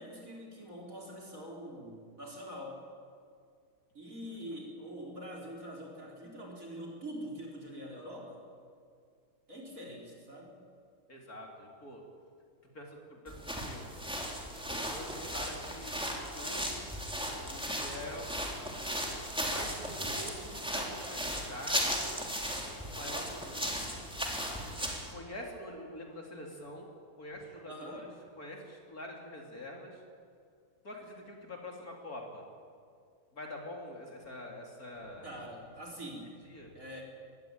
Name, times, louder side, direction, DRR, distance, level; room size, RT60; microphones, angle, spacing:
voice 1, 0.0-2.8 3.9-8.5 9.5-10.5 27.6-28.1 35.2-36.3 36.7-37.0, equal, 35° right, -1 dB, 4.7 m, -44 dB
voice 2, 11.1-12.1 12.7-13.9 14.7-16.0 16.3-16.9 17.5-18.3 19.4-22.0 22.8-23.9 24.6-24.8 25.1-26.9 27.2-28.1 28.4-30.0 30.8-32.4 33.3-35.4 36.4-36.8, left 1 dB, 40° left, 0 dB, 3.6 m, -45 dB
sound 1, 13.3-25.1, equal, ahead, 3.4 m, -36 dB
23.5 x 19.5 x 8.9 m, 2.2 s
omnidirectional pair, 2.4 m